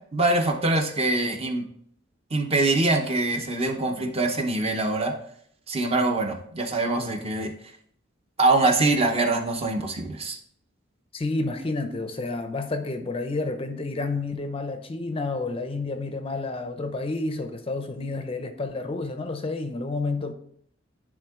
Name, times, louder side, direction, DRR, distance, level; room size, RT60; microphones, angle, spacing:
voice 1, 0.1-1.6 2.3-5.1 5.7-7.5 8.4-10.4, right 2 dB, 30° right, 4 dB, 0.8 m, -24 dB
voice 2, 11.1-20.3, left 3 dB, 30° left, 8 dB, 0.5 m, -30 dB
9.8 x 3.6 x 3.6 m, 0.65 s
head